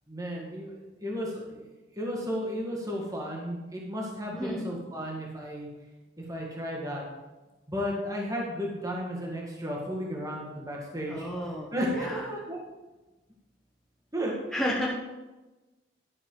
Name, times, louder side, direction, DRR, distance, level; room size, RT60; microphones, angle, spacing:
voice 1, 0.1-5.7 6.2-7.0 7.7-11.3 11.7-12.6 14.1-14.8, equal, 20° right, -2 dB, 1.8 m, -34 dB
voice 2, 11.1-12.2 14.5-14.9, equal, ahead, -4 dB, 1.1 m, -32 dB
11.5 x 9.7 x 3.9 m, 1.1 s
head